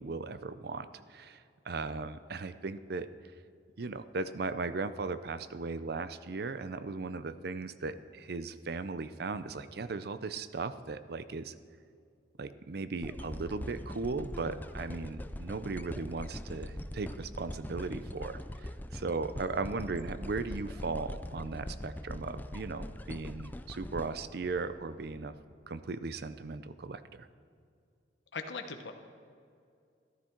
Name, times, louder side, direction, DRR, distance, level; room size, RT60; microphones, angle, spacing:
voice 1, 0.0-3.1 3.8-11.5 12.4-25.3 25.7-27.3, right 3 dB, 60° right, 13 dB, 0.6 m, -37 dB
sound 1, 13.0-25.2 25.8-25.9, left 1 dB, 10° left, 0.4 m, -42 dB
voice 2, 28.3-28.9, left 4 dB, 85° left, 5 dB, 1.0 m, -39 dB
14.0 x 12.5 x 4.5 m, 2.4 s
head